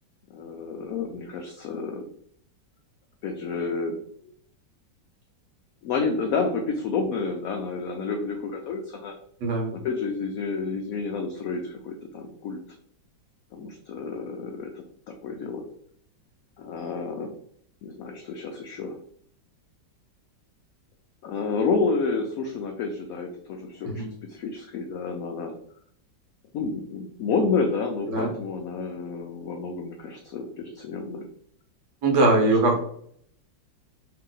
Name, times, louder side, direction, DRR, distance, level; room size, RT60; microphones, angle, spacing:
voice 1, 0.3-2.1 3.2-4.0 4.2-4.3 5.8-9.1 9.7-12.6 13.5-15.6 16.6-17.3 17.8-19.0 21.2-25.6 26.5-31.3 32.4-32.8, left 4 dB, 80° left, 3 dB, 0.7 m, -30 dB
voice 2, 32.0-32.8, right 2 dB, 70° right, 1 dB, 1.6 m, -21 dB
3.3 x 2.8 x 3.8 m, 0.65 s
omnidirectional pair, 2.0 m